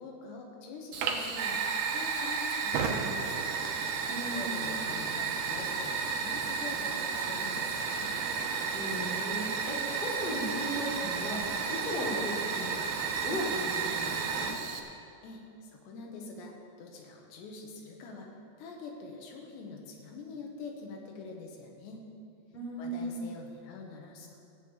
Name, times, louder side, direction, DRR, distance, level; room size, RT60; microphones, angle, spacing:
voice 1, 0.0-3.5 4.3-8.2 15.2-18.3 18.6-22.1 22.8-24.4, left 4 dB, 85° left, 1 dB, 3.6 m, -45 dB
Fire, 0.9-14.8, right 5 dB, 75° right, 2.7 m, -32 dB
voice 2, 4.1-4.8 8.7-14.6 22.5-23.3, equal, 15° left, -6 dB, 2.3 m, -37 dB
sound 1, 7.8-13.1, left 2 dB, 60° left, 2.1 m, -52 dB
14.5 x 5.8 x 8.7 m, 2.5 s
omnidirectional pair, 4.9 m